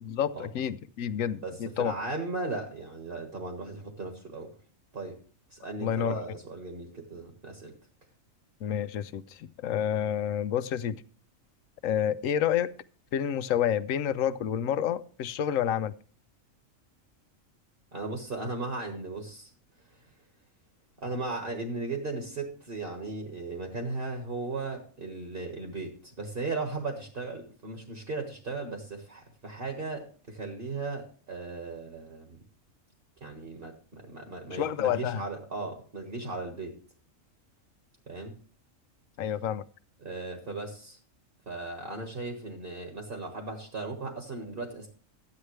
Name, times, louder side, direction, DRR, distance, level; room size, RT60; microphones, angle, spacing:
voice 1, 0.0-1.9 5.8-6.2 8.6-11.0 11.8-12.7 13.1-15.9 34.5-35.2 39.2-39.6, left 9 dB, 85° left, 1.0 m, -29 dB
voice 2, 1.4-4.5 4.9-5.2 5.5-7.7 17.9-19.5 21.0-32.4 33.2-36.7 38.1-38.4 40.0-41.0 41.5-44.9, right 3 dB, 45° right, 1.8 m, -37 dB
13.5 x 9.6 x 3.3 m
omnidirectional pair, 1.4 m